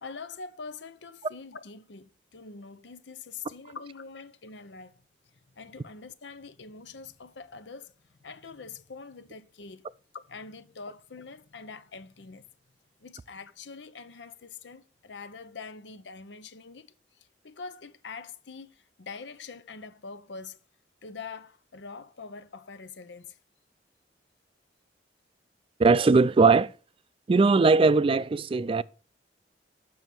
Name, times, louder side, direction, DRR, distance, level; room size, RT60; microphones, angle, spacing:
voice 1, 0.0-5.1 5.3-9.9 10.1-12.5 13.0-20.6 21.0-23.4, left 4 dB, 90° left, 0.8 m, -44 dB
voice 2, 25.8-26.7 27.3-28.8, right 4 dB, 30° right, 0.4 m, -20 dB
7.1 x 6.3 x 5.9 m
head